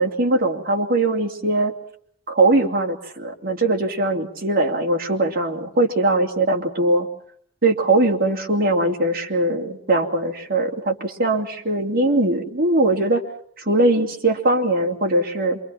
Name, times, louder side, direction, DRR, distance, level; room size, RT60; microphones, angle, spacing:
voice 1, 0.0-1.7 2.3-7.1 7.6-13.2 13.7-15.6, right 2 dB, 45° right, 2 dB, 2.9 m, -20 dB
27.0 x 24.0 x 5.8 m, 0.64 s
head